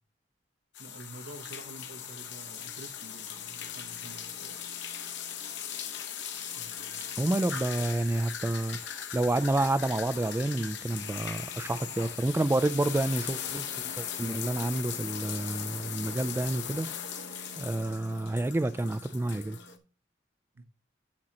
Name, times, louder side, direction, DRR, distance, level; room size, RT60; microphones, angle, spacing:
sound 1, 0.7-19.8, left 8 dB, 65° left, 1.1 m, -39 dB
voice 1, 0.8-4.9 6.6-7.1 20.5-20.6, right 2 dB, 75° right, 0.9 m, -49 dB
sound 2, 1.8-7.9 10.5-19.8, left 1 dB, 80° left, 1.8 m, -57 dB
voice 2, 7.2-8.8 9.1-13.7 14.0-16.9 17.6-19.6, right 2 dB, 10° right, 0.3 m, -29 dB
11.5 x 6.3 x 2.9 m
head